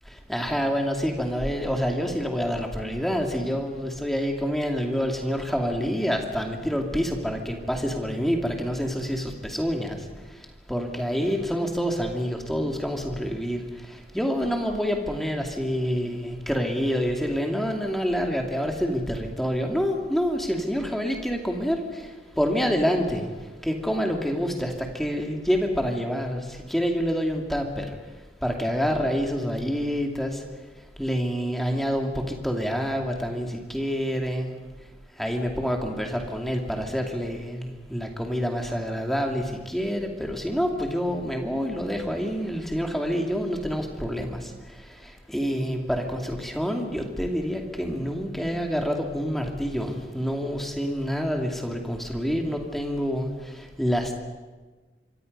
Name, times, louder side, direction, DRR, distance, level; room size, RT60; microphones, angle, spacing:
voice 1, 0.1-28.0 28.4-30.4 30.8-34.5 34.8-34.9 35.2-54.1, equal, ahead, 2 dB, 2.4 m, -27 dB
26.5 x 24.0 x 5.4 m, 1.3 s
head